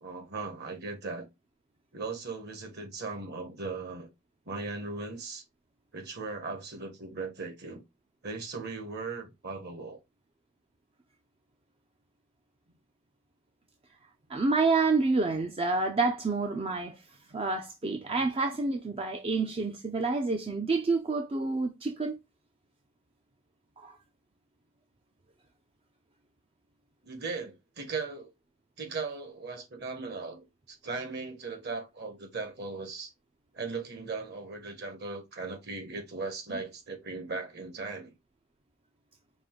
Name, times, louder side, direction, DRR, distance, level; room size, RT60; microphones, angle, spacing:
voice 1, 0.0-1.3 1.9-4.1 4.5-5.4 5.9-7.8 8.2-10.0 27.0-28.3 28.8-33.1 33.5-38.1, right 4 dB, 50° right, 1.3 m, -38 dB
voice 2, 14.3-17.0 17.3-22.2 23.8-24.0, right 3 dB, 25° right, 0.4 m, -28 dB
5.2 x 2.5 x 3.7 m
head